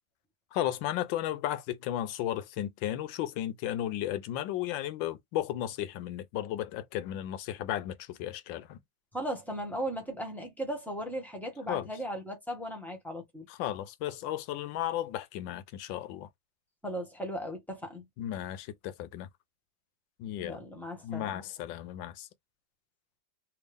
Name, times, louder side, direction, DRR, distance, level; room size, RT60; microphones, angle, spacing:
voice 1, 0.5-8.8 11.7-11.9 13.5-16.3 18.2-19.3 20.2-20.6 21.0-22.3, left 12 dB, 80° left, 1.3 m, -34 dB
voice 2, 9.1-13.5 16.8-18.0 20.4-21.5, equal, ahead, 1.0 m, -37 dB
3.5 x 2.7 x 3.4 m
omnidirectional pair, 2.1 m